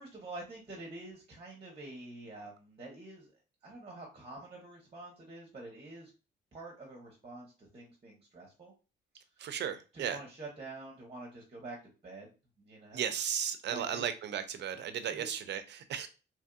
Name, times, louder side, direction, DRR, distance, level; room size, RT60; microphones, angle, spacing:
voice 1, 0.0-3.3 3.6-6.1 6.5-8.7 9.9-11.8 12.0-12.3 12.6-13.1 13.7-14.0 15.1-15.3, right 2 dB, 30° right, 1.0 m, -47 dB
voice 2, 9.4-10.2 12.9-16.1, right 9 dB, 60° right, 0.5 m, -35 dB
2.9 x 2.6 x 2.3 m
cardioid pair, 90°, 20 cm